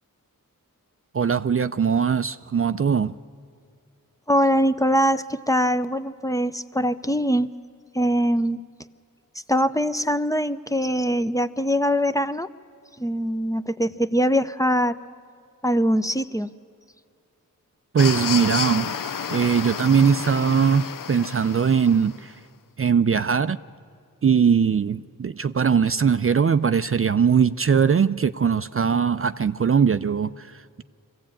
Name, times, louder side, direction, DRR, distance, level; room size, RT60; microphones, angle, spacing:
voice 1, 1.1-3.2 17.9-19.0 19.3-22.4 22.8-23.6 24.2-30.8, right 6 dB, 40° right, 0.5 m, -21 dB
voice 2, 4.3-7.5 7.9-8.6 9.5-12.5 13.0-15.0 15.6-16.5, equal, 10° left, 0.6 m, -22 dB
sound 1, 18.0-22.2, left 7 dB, 70° left, 0.6 m, -31 dB
23.5 x 15.5 x 8.8 m
cardioid pair, 50°, 33 cm